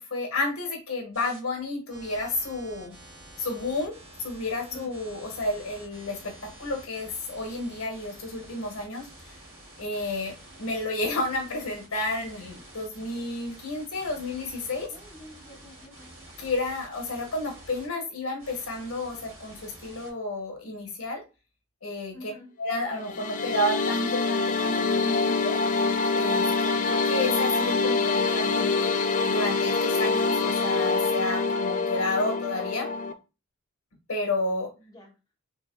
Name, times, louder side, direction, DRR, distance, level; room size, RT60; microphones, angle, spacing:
voice 1, 0.0-2.9 3.4-3.9 4.2-9.4 9.8-14.9 16.4-21.2 21.8-22.3 22.6-25.6 26.1-28.9 29.2-32.9 34.1-34.7, left 2 dB, 80° left, 2 dB, 1.6 m, -31 dB
sound 1, 1.1-1.4 1.9-17.9 18.4-20.1, right 1 dB, 70° right, 2.2 m, -49 dB
voice 2, 14.9-16.1 22.1-22.5 34.8-35.2, left 1 dB, 15° left, -3 dB, 0.9 m, -48 dB
sound 2, 22.9-33.1, left 4 dB, 35° left, 0.3 m, -25 dB
4.7 x 3.3 x 2.2 m, 0.30 s
head